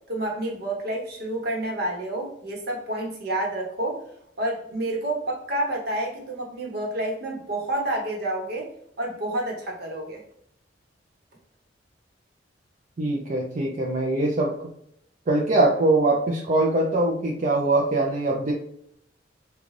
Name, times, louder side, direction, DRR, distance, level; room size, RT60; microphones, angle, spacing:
voice 1, 0.1-4.0 4.4-8.7 9.0-10.2, right 1 dB, 60° right, -1 dB, 1.0 m, -29 dB
voice 2, 13.0-14.5 15.3-18.5, right 2 dB, 40° right, -1 dB, 0.5 m, -22 dB
3.8 x 2.3 x 3.1 m, 0.70 s
head